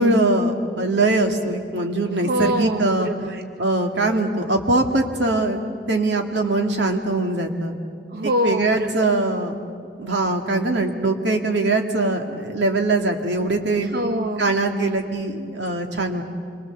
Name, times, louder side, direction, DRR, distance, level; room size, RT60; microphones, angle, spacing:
voice 1, 0.0-3.1 3.6-5.6 5.9-7.7 8.4-9.5 10.0-13.9 14.4-16.2, right 2 dB, 85° right, 4 dB, 2.1 m, -22 dB
voice 2, 2.2-3.4 8.1-8.9 13.8-14.6, equal, 55° right, 6 dB, 0.7 m, -25 dB
27.0 x 23.0 x 7.1 m, 2.3 s
head